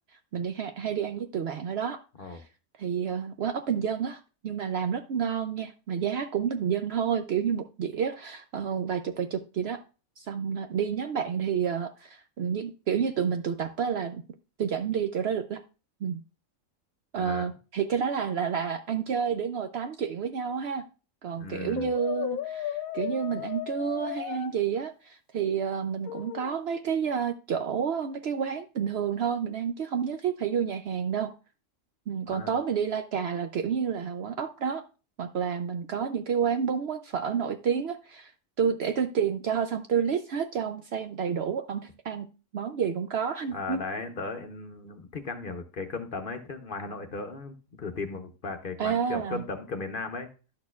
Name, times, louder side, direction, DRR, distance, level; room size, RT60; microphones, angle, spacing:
voice 1, 0.3-2.0 2.3-2.4 2.8-9.8 10.2-14.2 14.6-15.6 16.0-16.2 17.1-20.8 21.2-31.3 32.1-34.8 35.2-38.3 38.6-42.2 42.5-43.8 48.8-49.4, right 7 dB, 65° right, 8 dB, 0.7 m, -29 dB
voice 2, 17.2-17.5 21.3-21.9 32.3-32.6 43.5-50.3, left 4 dB, 50° left, 6 dB, 0.8 m, -36 dB
Brass instrument, 21.8-24.5 26.1-26.6, left 11 dB, 90° left, 1.0 m, -35 dB
11.5 x 6.4 x 2.3 m, 0.33 s
omnidirectional pair, 1.4 m